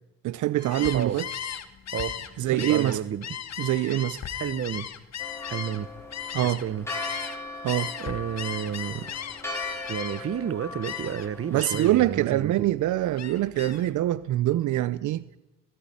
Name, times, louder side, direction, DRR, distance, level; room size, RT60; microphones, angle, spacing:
voice 1, 0.2-1.3 2.4-3.0 3.6-4.2 6.3-6.6 7.6-7.9 11.5-15.4, right 14 dB, 75° right, 0.7 m, -24 dB
Gull seagull, 0.6-7.4 7.7-10.4 10.8-11.3 11.6-12.1 12.4-13.9, left 9 dB, 60° left, 1.8 m, -36 dB
voice 2, 2.4-3.2 4.4-4.9 5.5-5.9 6.4-6.9 8.0-9.1 9.9-12.7, right 9 dB, 50° right, 1.0 m, -31 dB
Church bell, 5.2-11.8, left 2 dB, 10° left, 5.0 m, -39 dB
17.0 x 17.0 x 9.9 m
cardioid pair, 90°, 30 cm